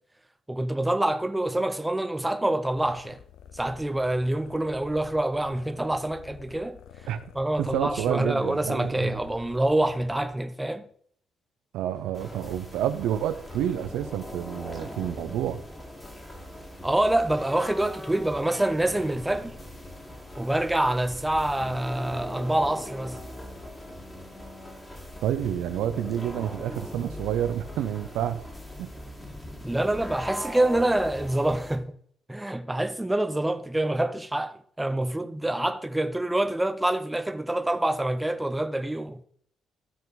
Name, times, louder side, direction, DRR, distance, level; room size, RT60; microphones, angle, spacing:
voice 1, 0.5-3.2 3.5-6.8 7.3-10.8 16.8-19.6 20.4-23.2 29.6-32.0 32.3-39.2, right 1 dB, 10° right, 0.6 m, -26 dB
sound 1, 2.7-10.3, left 8 dB, 85° left, 0.6 m, -49 dB
sound 2, 3.7-5.8 8.1-9.2 10.7-10.8 11.9-13.5, left 1 dB, 60° left, 3.6 m, -57 dB
voice 2, 7.6-9.2 11.7-15.6 25.2-28.4 28.8-28.9, right 11 dB, 90° right, 0.6 m, -29 dB
sound 3, 12.1-31.8, left 1 dB, 15° left, 2.2 m, -40 dB
13.0 x 4.5 x 4.1 m
cardioid pair, 90°, 0 cm